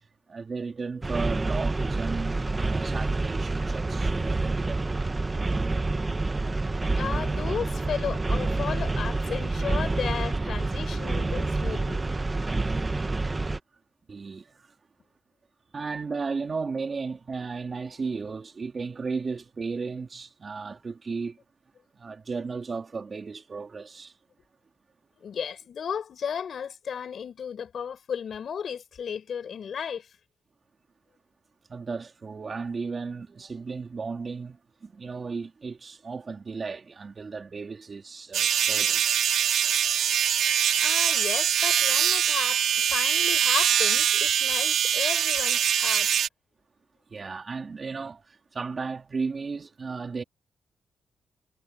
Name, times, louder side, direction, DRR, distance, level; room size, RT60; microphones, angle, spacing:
voice 1, 0.3-4.8 14.1-14.7 15.7-21.4 21.9-24.1 31.7-39.1 47.1-50.2, right 4 dB, 40° right, 3.4 m, -35 dB
sound 1, 1.0-13.6, right 3 dB, 25° right, 1.3 m, -28 dB
voice 2, 6.9-12.0 25.2-30.1 40.8-46.1, left 7 dB, 60° left, 6.3 m, -34 dB
sound 2, 38.3-46.3, right 9 dB, 85° right, 2.2 m, -23 dB
cardioid pair, 100°, 0 cm